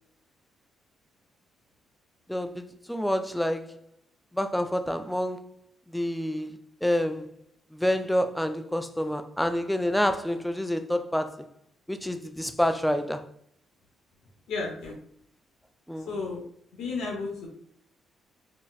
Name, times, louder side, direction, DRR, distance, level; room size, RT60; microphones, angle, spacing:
voice 1, 2.3-3.7 4.3-5.5 5.9-7.3 7.7-11.5 11.9-13.3 15.9-16.1, equal, 5° left, 0.3 m, -28 dB
voice 2, 14.5-14.9 16.1-16.4 16.7-17.5, left 4 dB, 85° left, 0.8 m, -32 dB
4.0 x 2.0 x 2.3 m
cardioid pair, 90°, 0 cm